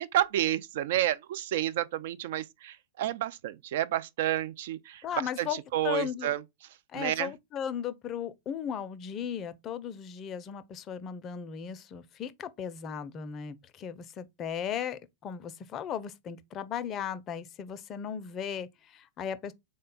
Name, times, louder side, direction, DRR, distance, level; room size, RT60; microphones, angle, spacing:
voice 1, 0.0-5.0 5.4-6.4 6.9-7.3, right 13 dB, 60° right, 0.3 m, -30 dB
voice 2, 5.0-6.3 6.9-19.5, left 8 dB, 30° left, 0.4 m, -36 dB
3.7 x 2.1 x 3.8 m
hypercardioid pair, 105°, 0 cm